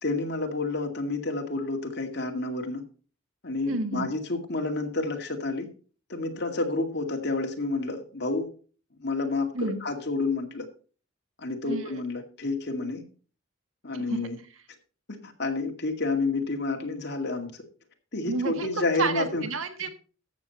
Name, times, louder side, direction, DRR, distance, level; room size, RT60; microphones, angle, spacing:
voice 1, 0.0-2.8 3.4-5.7 6.1-8.5 9.0-10.7 11.4-13.0 13.8-14.4 15.1-17.6 18.1-19.4, left 3 dB, 55° left, 3 dB, 2.2 m, -29 dB
voice 2, 3.7-4.1 9.5-9.8 11.6-12.0 14.1-14.2 18.3-18.7 19.0-19.9, right 3 dB, 85° right, 7 dB, 1.6 m, -30 dB
14.0 x 7.1 x 4.2 m, 0.39 s
head